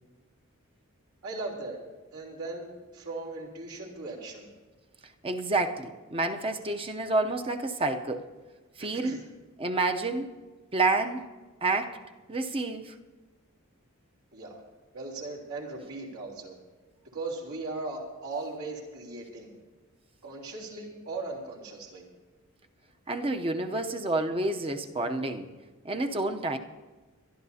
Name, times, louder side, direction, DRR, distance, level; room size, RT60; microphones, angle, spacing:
voice 1, 1.2-1.8 2.1-4.5 8.8-9.2 14.3-14.6 14.9-16.5 17.1-19.5 20.2-22.0, right 3 dB, 80° right, 3.4 m, -38 dB
voice 2, 5.2-8.3 8.8-9.2 9.6-10.3 10.7-11.2 11.6-12.0 12.3-12.9 23.1-25.5 25.8-26.6, right 2 dB, 25° right, 0.7 m, -29 dB
24.0 x 11.5 x 2.8 m
head